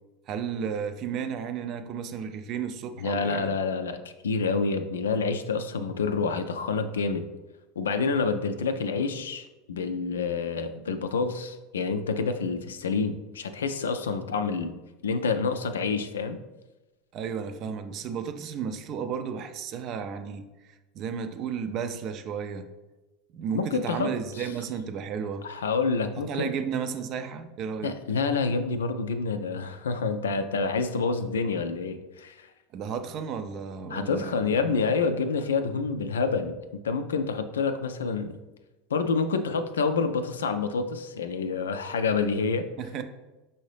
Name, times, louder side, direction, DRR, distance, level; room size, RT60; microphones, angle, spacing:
voice 1, 0.3-3.5 17.1-20.5 20.9-22.7 23.3-25.4 26.3-28.0 32.7-34.5 42.8-43.0, right 7 dB, 50° right, 8 dB, 0.4 m, -33 dB
voice 2, 3.0-7.2 7.8-14.8 15.0-16.4 23.5-24.5 25.4-26.5 27.8-32.5 33.9-36.5 36.8-38.3 38.9-42.7, left 4 dB, 85° left, 9 dB, 0.3 m, -28 dB
5.4 x 2.7 x 3.3 m, 1.1 s
hypercardioid pair, 85°, 0 cm